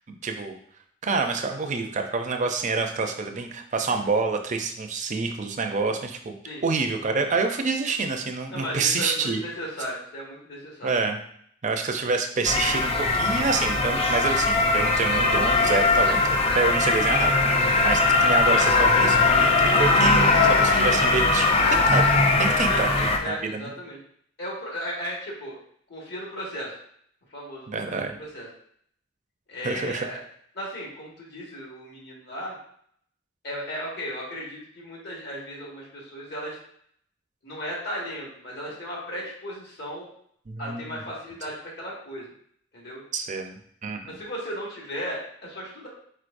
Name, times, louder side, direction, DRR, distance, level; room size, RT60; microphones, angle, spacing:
voice 1, 0.1-0.6 1.0-6.4 6.6-9.4 10.8-11.2 11.6-23.7 27.7-28.2 29.6-30.1 40.5-41.0 43.1-44.1, right 4 dB, 40° right, 5 dB, 0.5 m, -27 dB
voice 2, 8.5-10.9 22.7-22.8 23.2-24.0 24.4-25.5 25.9-26.7 27.3-28.5 29.5-30.2 30.5-32.6 33.4-36.6 37.4-40.1 40.6-42.3 42.7-43.0 44.1-45.9, equal, 60° left, -4 dB, 1.6 m, -35 dB
sound 1, 12.4-23.2, left 3 dB, 30° left, 0.5 m, -20 dB
4.6 x 4.4 x 2.6 m, 0.65 s
head